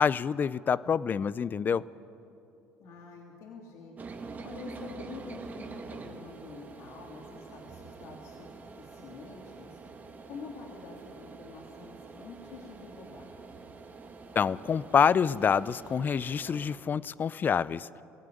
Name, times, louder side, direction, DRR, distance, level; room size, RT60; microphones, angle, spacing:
voice 1, 0.0-1.8 14.4-17.9, left 7 dB, 35° left, 20 dB, 0.5 m, -26 dB
voice 2, 2.8-3.9 4.4-9.8 10.2-13.3, left 4 dB, 70° left, 0 dB, 2.8 m, -47 dB
sound 1, 4.0-16.8, right 4 dB, 30° right, 2.0 m, -46 dB
21.5 x 15.5 x 9.3 m, 2.9 s
supercardioid pair, 95°, 5 cm